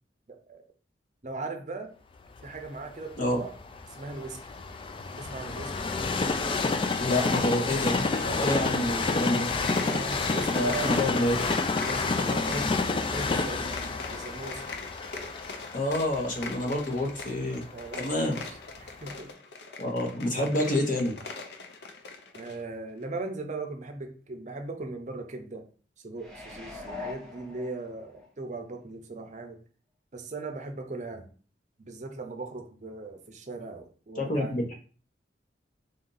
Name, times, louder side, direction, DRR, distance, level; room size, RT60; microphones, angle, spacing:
voice 1, 0.3-0.6 1.2-1.9 2.4-3.5 3.9-4.4 5.2-5.7 9.8-11.2 11.8-13.8 14.1-14.8 17.7-19.3 20.1-20.2 22.3-25.6 26.0-29.6 30.1-31.3 31.8-34.6, right 3 dB, 40° right, 5 dB, 0.6 m, -38 dB
Train, 2.4-18.3 18.9-19.0, left 3 dB, 30° left, 0.3 m, -29 dB
voice 2, 7.0-9.5 10.5-11.4 15.7-17.6 18.0-18.4 19.8-21.1 34.2-34.7, left 1 dB, 50° left, 1 dB, 1.0 m, -28 dB
sound 1, 9.5-22.6, left 4 dB, 70° left, 0.6 m, -42 dB
sound 2, 26.2-28.3 28.7-28.8, left 3 dB, 5° left, 0.9 m, -41 dB
3.8 x 2.7 x 3.9 m, 0.41 s
head